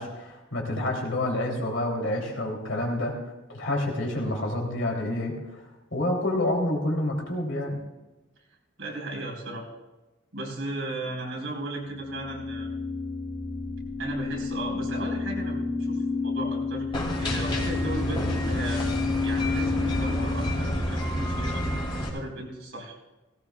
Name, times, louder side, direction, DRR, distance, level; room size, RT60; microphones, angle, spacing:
voice 1, 0.0-3.1 3.5-5.6 5.9-7.8, left 1 dB, 75° left, -1 dB, 3.3 m, -28 dB
voice 2, 8.8-9.7 10.3-12.7 14.0-18.9 19.2-23.0, right 1 dB, 85° right, -2 dB, 4.5 m, -36 dB
sound 1, 11.6-21.8, left 3 dB, 5° left, 1.3 m, -30 dB
sound 2, 16.9-22.1, equal, 25° left, 2.8 m, -30 dB
18.0 x 17.5 x 2.4 m, 1.1 s
head